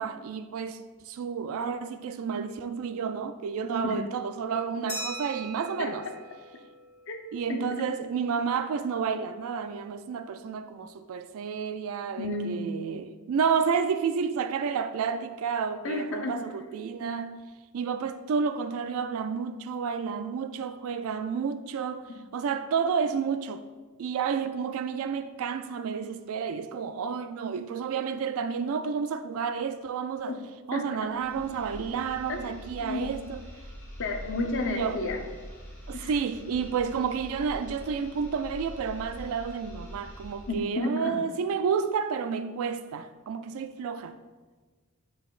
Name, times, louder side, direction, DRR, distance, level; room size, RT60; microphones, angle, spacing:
voice 1, 0.0-6.0 7.3-17.4 17.7-23.6 24.0-30.3 30.7-33.4 34.7-35.0 35.9-44.2, right 6 dB, 70° right, 0.3 m, -30 dB
Glass, 4.9-7.4, right 1 dB, 30° left, 1.5 m, -40 dB
voice 2, 12.2-12.6 15.8-16.3 30.3-30.4 30.7-31.1 32.3-32.5 32.8-33.2 34.0-35.2 35.9-36.1 40.5-41.2, left 2 dB, 60° left, 0.8 m, -31 dB
sound 1, 31.0-40.6, equal, 10° left, 1.3 m, -44 dB
8.3 x 5.7 x 2.4 m
head